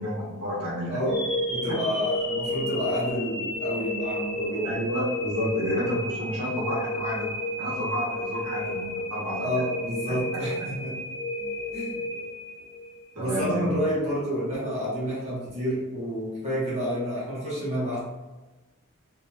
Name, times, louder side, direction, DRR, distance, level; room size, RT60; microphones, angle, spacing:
voice 1, 0.0-1.0 4.6-7.3 7.6-9.6 13.2-13.7, equal, 90° right, -7 dB, 1.0 m, -30 dB
voice 2, 0.9-4.8 9.4-11.0 11.7-12.0 13.1-18.0, equal, 30° right, -8 dB, 1.0 m, -29 dB
sound 1, 1.1-13.2, left 1 dB, 20° left, 0.7 m, -32 dB
2.8 x 2.6 x 2.3 m, 1.2 s
head